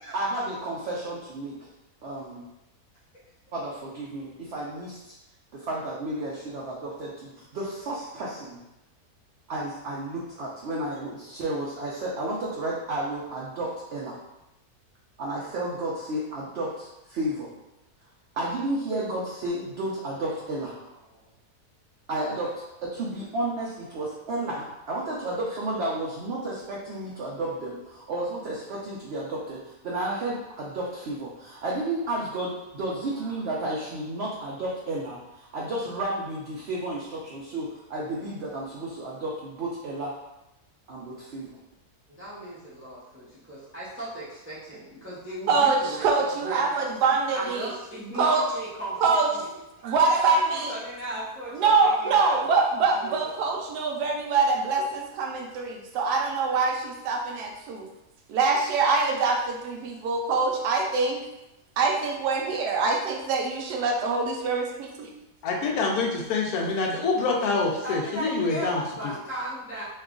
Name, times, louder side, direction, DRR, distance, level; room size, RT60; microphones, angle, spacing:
voice 1, 0.1-1.5 2.0-2.4 3.5-5.1 5.5-8.6 9.5-14.2 15.2-17.5 18.3-20.7 22.1-22.5 22.8-40.1 40.9-41.6, right 1 dB, 60° right, -5 dB, 0.7 m, -32 dB
voice 2, 20.3-21.2 33.1-33.5 42.1-46.7 47.3-49.2 49.8-49.9 50.2-52.6 52.8-53.6 67.8-69.8, right 1 dB, 10° right, -8 dB, 0.5 m, -37 dB
voice 3, 45.5-47.7 48.1-48.4 49.0-49.3 49.8-50.7 51.5-57.9 58.3-61.2 61.8-65.1, right 4 dB, 90° right, 1 dB, 1.2 m, -24 dB
voice 4, 65.4-68.8, left 3 dB, 75° left, 0 dB, 1.1 m, -26 dB
3.1 x 2.3 x 3.7 m, 0.91 s
omnidirectional pair, 1.7 m